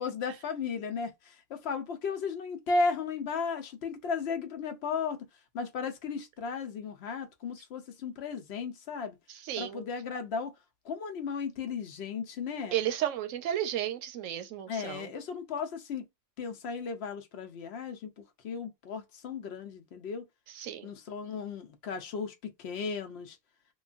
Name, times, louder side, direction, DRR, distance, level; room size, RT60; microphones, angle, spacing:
voice 1, 0.0-5.2 5.5-9.2 9.6-10.5 10.8-12.8 14.7-16.0 16.4-20.3 20.8-23.4, left 5 dB, 65° left, 0.8 m, -35 dB
voice 2, 9.4-9.8 12.7-15.1 20.5-20.9, right 11 dB, 90° right, 1.0 m, -33 dB
3.0 x 2.2 x 2.4 m
omnidirectional pair, 1.3 m